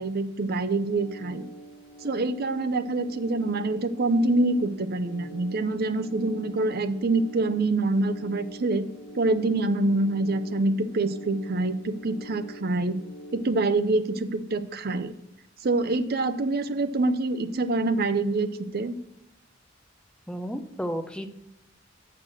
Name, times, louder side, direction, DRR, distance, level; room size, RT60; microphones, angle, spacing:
voice 1, 0.0-1.4 2.0-8.9 9.1-13.0 13.3-15.1 15.6-19.0, right 2 dB, 50° right, 11 dB, 0.6 m, -26 dB
sound 1, 0.7-13.5, right 1 dB, 40° left, 2.5 m, -45 dB
voice 2, 20.3-21.3, equal, 5° left, 7 dB, 0.6 m, -32 dB
6.5 x 5.8 x 6.1 m, 0.84 s
head